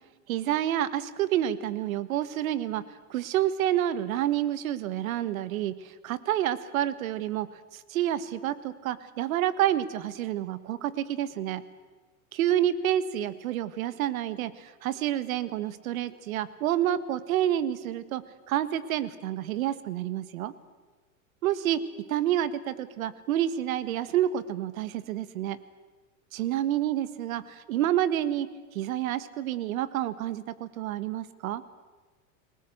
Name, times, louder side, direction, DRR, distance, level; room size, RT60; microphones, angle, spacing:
voice 1, 0.3-2.8 3.1-7.5 7.7-11.6 12.3-18.2 18.5-20.5 21.4-21.8 22.1-25.6 26.3-28.5 28.7-31.6, right 12 dB, 80° right, 16 dB, 1.6 m, -28 dB
29.5 x 20.5 x 7.9 m, 1.3 s
supercardioid pair, 165°, 41 cm